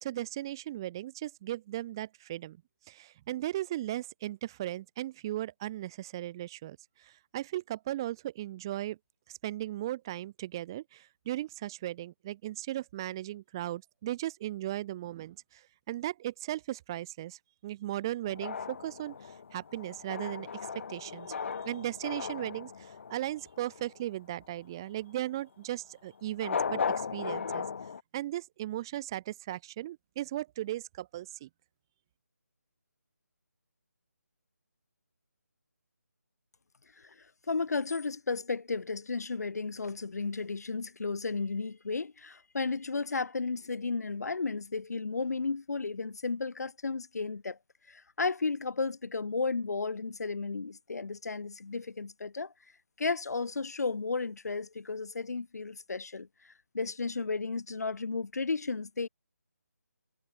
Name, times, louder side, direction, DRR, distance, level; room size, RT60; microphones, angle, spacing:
voice 1, 0.0-2.6 2.9-9.0 9.3-20.5 20.9-21.4 21.6-27.6 28.1-31.5, right 14 dB, 15° right, 0.4 m, -37 dB
sound 1, 18.2-24.0 26.3-28.0, left 6 dB, 45° left, 1.6 m, -37 dB
voice 2, 37.5-47.6 47.9-52.5 53.0-59.1, left 4 dB, 70° left, 1.0 m, -33 dB
figure-of-eight pair, 160°, 9 cm